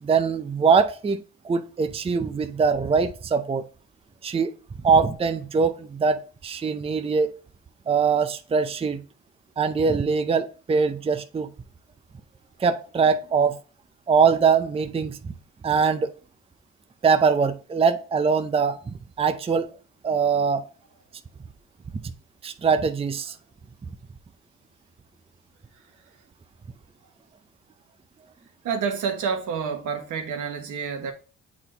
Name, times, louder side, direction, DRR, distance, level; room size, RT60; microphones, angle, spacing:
voice 1, 0.0-3.6 4.2-4.5 4.8-7.3 7.9-9.0 9.6-11.5 12.6-13.6 14.1-15.3 15.6-16.1 17.0-19.7 20.0-20.6 22.4-23.3, right 5 dB, 20° right, 0.5 m, -22 dB
voice 2, 28.6-31.1, right 6 dB, 80° right, 1.3 m, -28 dB
7.4 x 4.2 x 3.3 m
cardioid pair, 90°, 30 cm